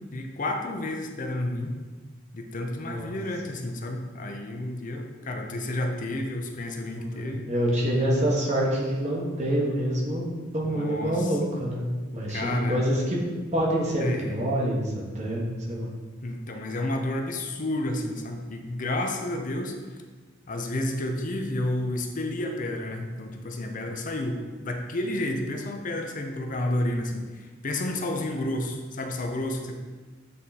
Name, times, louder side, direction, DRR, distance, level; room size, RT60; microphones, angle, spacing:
voice 1, 0.1-1.7 2.3-7.5 10.6-11.4 12.3-12.8 14.0-14.4 16.2-19.8 20.5-29.8, left 1 dB, 45° left, 3 dB, 0.6 m, -31 dB
voice 2, 2.8-3.1 6.9-10.2 10.5-11.8 12.1-13.2 13.5-15.4 15.7-15.9, right 1 dB, 35° right, -3 dB, 1.4 m, -26 dB
8.4 x 3.7 x 4.2 m, 1.4 s
head